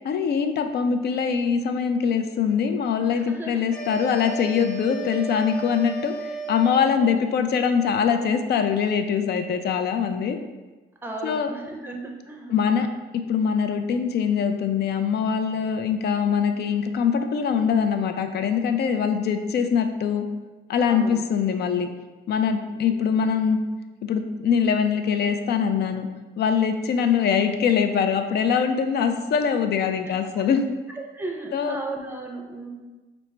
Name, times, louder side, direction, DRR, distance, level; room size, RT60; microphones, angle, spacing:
voice 1, 0.0-10.4 11.2-11.5 12.5-12.9 13.3-20.3 20.7-21.9 22.3-23.6 24.0-26.1 26.4-30.6 31.5-31.8, left 7 dB, 55° left, 7 dB, 0.4 m, -23 dB
voice 2, 3.1-3.6 7.0-7.1 11.0-12.6 20.9-21.2 22.7-23.3 30.1-30.4 31.1-32.7, right 2 dB, 10° right, 1 dB, 0.6 m, -36 dB
sound 1, 3.7-7.2, right 4 dB, 85° left, 0.9 m, -34 dB
4.4 x 2.0 x 3.2 m, 1.2 s
cardioid pair, 90°, 20 cm